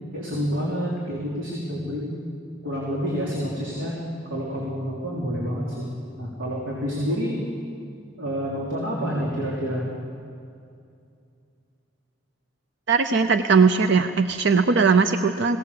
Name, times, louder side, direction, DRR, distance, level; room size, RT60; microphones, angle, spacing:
voice 1, 0.1-2.1 2.6-3.9 4.3-5.9 6.2-7.4 8.2-9.9, equal, 85° right, -4 dB, 3.6 m, -28 dB
voice 2, 12.9-15.6, right 5 dB, 65° right, 9 dB, 0.7 m, -19 dB
23.0 x 17.5 x 6.9 m, 2.4 s
head